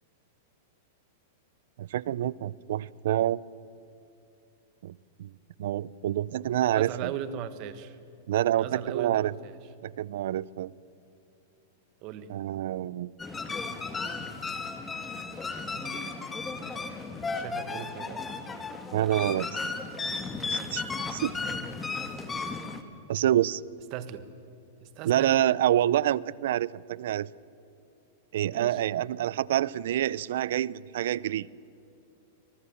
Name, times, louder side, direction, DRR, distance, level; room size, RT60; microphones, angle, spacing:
voice 1, 1.8-3.4 4.8-5.3 5.6-7.1 8.3-9.3 9.8-10.7 12.3-13.1 18.9-19.6 20.5-21.3 23.1-23.6 25.0-27.3 28.3-31.5, right 12 dB, 70° right, 23 dB, 0.5 m, -27 dB
voice 2, 6.7-8.0 8.6-9.5 12.0-12.3 17.3-18.3 23.9-24.2 24.8-25.4 28.5-28.8, right 9 dB, 45° right, 12 dB, 1.6 m, -38 dB
sound 1, 13.2-22.8, left 4 dB, 15° left, 1.6 m, -35 dB
25.0 x 19.0 x 7.2 m, 2.8 s
hypercardioid pair, 140°, 0 cm